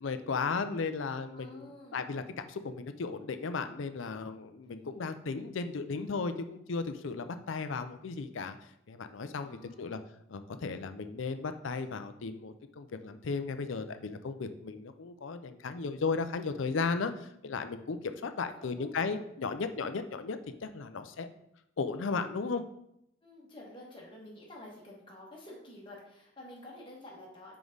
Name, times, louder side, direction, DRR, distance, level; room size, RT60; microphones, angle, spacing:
voice 1, 0.0-8.6 8.9-10.0 10.3-21.3 21.8-22.6, left 4 dB, 75° left, 9 dB, 0.5 m, -35 dB
voice 2, 1.3-2.1 4.6-5.1 9.4-10.0 18.6-19.1 23.2-27.6, left 1 dB, 25° left, -3 dB, 1.5 m, -50 dB
5.2 x 4.8 x 3.9 m, 0.77 s
head